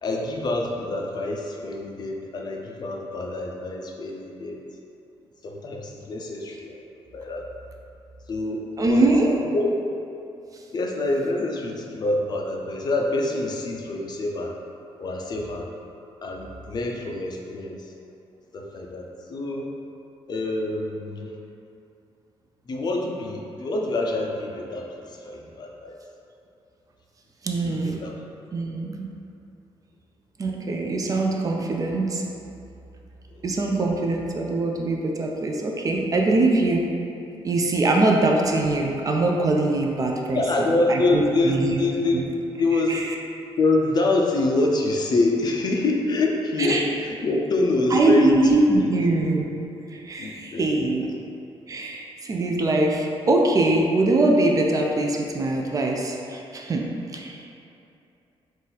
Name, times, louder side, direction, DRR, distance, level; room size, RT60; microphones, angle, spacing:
voice 1, 0.0-4.6 5.4-6.7 7.1-7.4 8.3-9.0 9.5-9.8 10.7-14.5 15.0-15.7 16.2-17.8 18.5-19.7 20.3-21.3 22.7-25.9 27.6-28.1 33.3-33.4 40.3-43.1 43.6-48.9 50.2-51.0, left 2 dB, 40° left, 0 dB, 0.4 m, -26 dB
voice 2, 8.8-9.4 27.4-28.0 28.5-29.1 30.4-32.2 33.4-36.8 37.4-40.4 40.9-41.8 42.1-42.2 42.9-43.0 46.6-46.8 47.9-51.1 51.7-56.9 57.1-57.4, right 2 dB, 35° right, 0 dB, 0.4 m, -22 dB
3.9 x 2.4 x 4.0 m, 2.8 s
cardioid pair, 125°, 10 cm